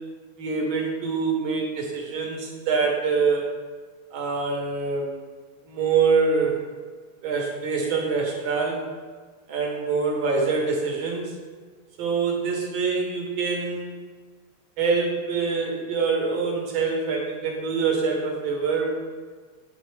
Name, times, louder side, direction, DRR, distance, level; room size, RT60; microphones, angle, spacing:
voice 1, 0.4-3.5 4.1-5.2 5.7-6.6 7.2-8.9 9.5-11.3 12.0-13.9 14.8-18.9, right 4 dB, 70° right, 0 dB, 1.6 m, -25 dB
8.3 x 3.6 x 3.1 m, 1.5 s
omnidirectional pair, 2.4 m